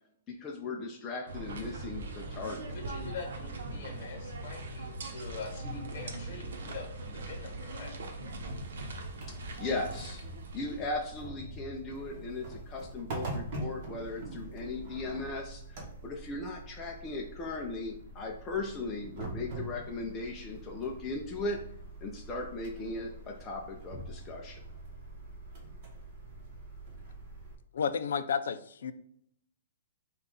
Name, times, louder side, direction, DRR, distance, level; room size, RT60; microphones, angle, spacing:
voice 1, 0.3-2.7 9.3-10.2 10.5-21.6 22.0-24.6, left 3 dB, 15° left, -1 dB, 0.4 m, -38 dB
sound 1, 1.3-11.2, right 2 dB, 75° right, 0.8 m, -41 dB
voice 2, 2.7-7.9, left 4 dB, 35° left, 1 dB, 1.1 m, -44 dB
sound 2, 8.3-27.6, right 2 dB, 35° right, 1.1 m, -44 dB
voice 3, 27.7-28.9, left 6 dB, 75° left, 12 dB, 0.4 m, -31 dB
5.4 x 2.3 x 3.7 m, 0.70 s
hypercardioid pair, 170°, 0 cm